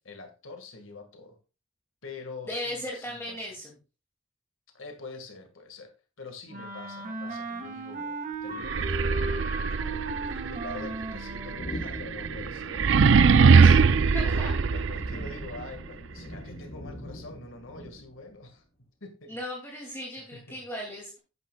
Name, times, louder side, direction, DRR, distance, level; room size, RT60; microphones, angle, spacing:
voice 1, 0.0-1.4 2.0-3.5 4.7-12.9 13.7-14.0 14.4-18.6 19.0-19.4 19.8-19.9 20.1-20.6, left 3 dB, 90° left, 5 dB, 1.9 m, -45 dB
voice 2, 2.5-3.7 13.6-13.9 14.1-14.5 19.3-21.2, left 1 dB, 15° left, -2 dB, 2.5 m, -36 dB
Wind instrument woodwind instrument, 6.5-11.7, right 2 dB, 40° right, 2.2 m, -36 dB
sound 1, 8.6-15.5, right 5 dB, 70° right, 0.5 m, -22 dB
sound 2, 11.5-18.3, equal, 50° left, 5.8 m, -42 dB
12.0 x 9.6 x 2.4 m, 0.31 s
head